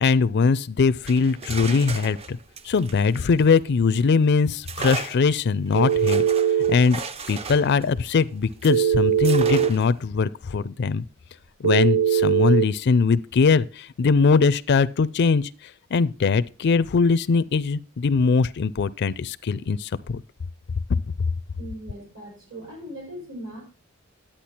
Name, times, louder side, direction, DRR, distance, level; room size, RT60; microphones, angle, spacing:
voice 1, 0.0-2.4 2.6-6.2 6.7-7.0 7.3-11.0 11.6-20.2 20.9-21.0, left 5 dB, 50° left, 0.4 m, -21 dB
sound 1, 0.9-4.0 4.6-8.8 9.2-10.0, right 4 dB, 30° right, 0.5 m, -36 dB
Telephone, 5.7-6.8 8.7-9.7 11.6-12.7, right 8 dB, 90° right, 0.7 m, -20 dB
voice 2, 21.6-23.6, equal, 60° right, 6.1 m, -39 dB
10.0 x 8.8 x 4.3 m
head